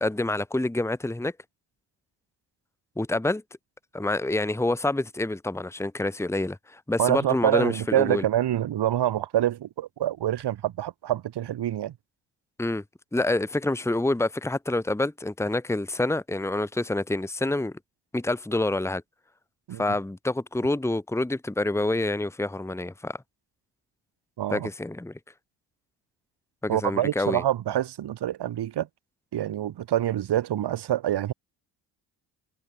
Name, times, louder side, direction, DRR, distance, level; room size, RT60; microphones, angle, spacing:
voice 1, 0.0-1.3 3.0-3.4 3.9-8.2 12.6-12.8 13.1-17.7 18.1-19.0 19.8-23.2 24.5-25.1 26.6-27.4, left 2 dB, 5° left, 1.5 m, -27 dB
voice 2, 7.0-11.9 19.7-19.8 24.4-24.7 26.7-28.9 29.3-31.3, right 12 dB, 50° right, 1.7 m, -26 dB
hypercardioid pair, 55°, 50 cm